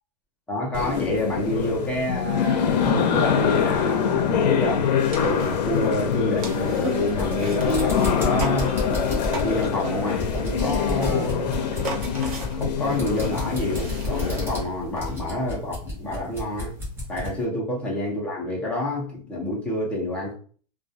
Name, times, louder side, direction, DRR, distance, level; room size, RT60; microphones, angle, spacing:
voice 1, 0.5-8.7 9.3-11.6 12.5-16.7 17.1-20.3, left 1 dB, 5° left, 0.5 m, -28 dB
sound 1, 0.7-14.6, left 7 dB, 85° left, 0.5 m, -24 dB
sound 2, 5.1-15.2, right 2 dB, 55° right, 0.7 m, -36 dB
sound 3, 7.0-17.4, left 1 dB, 10° right, 0.9 m, -32 dB
2.3 x 2.3 x 2.6 m
supercardioid pair, 155°, 21 cm